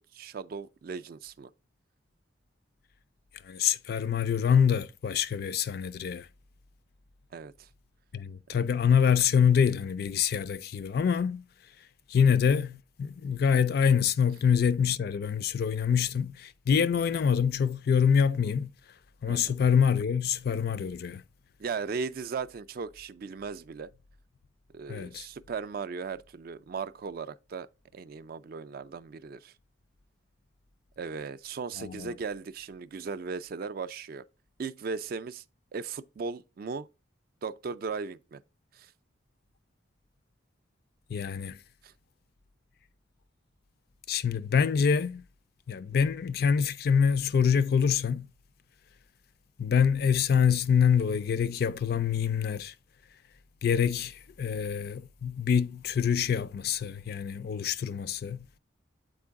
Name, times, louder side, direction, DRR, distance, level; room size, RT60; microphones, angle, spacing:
voice 1, 0.0-1.5 7.3-7.7 19.3-19.6 21.6-23.9 24.7-27.7 27.9-29.5 31.0-34.3 34.6-35.4 35.7-36.9 37.4-38.4 38.7-38.9 41.8-41.9, right 5 dB, 50° right, 0.3 m, -37 dB
voice 2, 3.4-6.3 8.1-11.4 12.1-18.7 19.2-21.2 24.9-25.3 31.8-32.1 41.1-41.6 44.1-45.2 45.7-48.3 49.6-52.7 53.6-58.5, left 7 dB, 50° left, 0.3 m, -25 dB
7.7 x 4.5 x 3.5 m
head